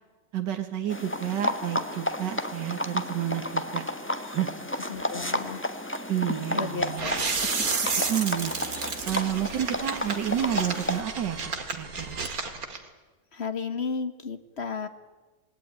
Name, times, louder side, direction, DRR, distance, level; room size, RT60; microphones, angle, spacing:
voice 1, 0.3-3.8 4.3-4.5 6.1-7.1 8.1-8.5 9.1-11.4 11.7-12.2, right 10 dB, 70° right, 5 dB, 2.2 m, -30 dB
sound 1, 0.9-11.0, left 1 dB, 5° left, 1.2 m, -32 dB
voice 2, 4.8-5.6 6.5-7.3 13.3-14.9, left 4 dB, 40° left, 10 dB, 1.5 m, -33 dB
sound 2, 7.0-12.8, right 4 dB, 50° right, 2.5 m, -31 dB
27.0 x 20.0 x 9.6 m, 1.3 s
omnidirectional pair, 2.0 m